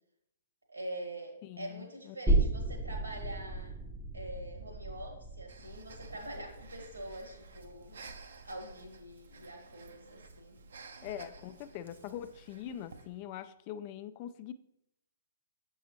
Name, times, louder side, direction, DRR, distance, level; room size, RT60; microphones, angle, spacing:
voice 1, 0.7-3.8 4.1-8.0 8.4-10.6 11.2-11.3, right 1 dB, 80° right, 3 dB, 1.6 m, -45 dB
voice 2, 1.4-2.2 11.0-14.5, left 10 dB, 35° left, 12 dB, 0.3 m, -43 dB
sound 1, 2.3-9.5 9.9-10.0, right 2 dB, 5° right, 0.6 m, -34 dB
Breathing, 5.5-13.2, right 4 dB, 60° right, 0.6 m, -53 dB
7.3 x 5.4 x 2.9 m, 0.79 s
figure-of-eight pair, 115°, 0 cm